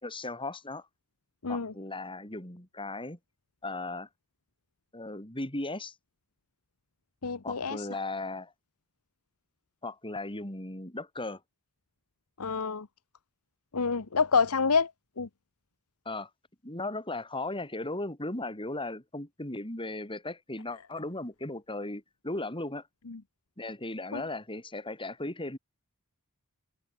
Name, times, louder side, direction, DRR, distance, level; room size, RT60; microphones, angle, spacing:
voice 1, 0.0-0.9 1.5-3.2 3.6-4.1 4.9-6.0 7.4-8.5 9.8-11.4 16.1-16.3 16.6-22.9 23.6-25.6, left 2 dB, 25° left, 5.5 m, -37 dB
voice 2, 7.2-7.8 12.4-12.9 13.7-14.9 15.2-15.3 24.1-24.2, left 5 dB, 90° left, 1.1 m, -27 dB
open air
head